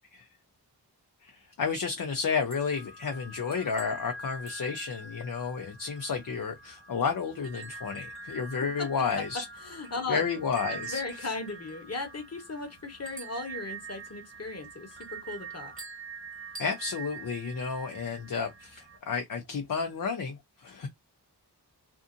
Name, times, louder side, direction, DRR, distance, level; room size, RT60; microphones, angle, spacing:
voice 1, 1.2-9.4 10.1-11.3 16.6-20.9, left 5 dB, 55° left, 0.6 m, -32 dB
sound 1, 2.1-19.0, right 4 dB, 30° right, 1.3 m, -45 dB
voice 2, 9.6-10.2 10.7-15.7, left 3 dB, 35° left, 1.1 m, -37 dB
2.7 x 2.5 x 2.5 m
wide cardioid pair, 80°, 41 cm